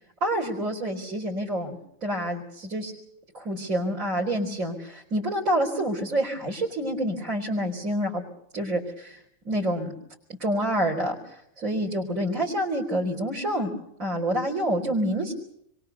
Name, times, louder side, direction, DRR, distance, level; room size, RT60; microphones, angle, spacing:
voice 1, 0.2-2.9 3.3-8.2 8.5-9.9 10.4-13.7 14.0-15.3, right 1 dB, 75° right, -2 dB, 4.3 m, -27 dB
29.0 x 23.0 x 6.8 m, 0.73 s
omnidirectional pair, 1.5 m